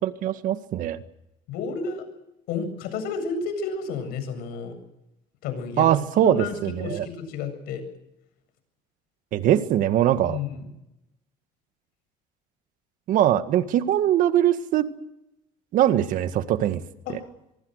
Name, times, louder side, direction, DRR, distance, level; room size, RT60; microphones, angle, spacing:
voice 1, 0.0-1.0 5.8-7.1 9.3-10.4 13.1-14.9 15.7-16.8, right 11 dB, 60° right, 10 dB, 1.8 m, -22 dB
voice 2, 1.5-2.0 2.5-4.7 5.4-5.9 6.2-7.8 10.2-10.7 17.1-17.2, left 5 dB, 75° left, 9 dB, 7.6 m, -31 dB
24.5 x 24.0 x 6.6 m, 0.86 s
cardioid pair, 130°, 16 cm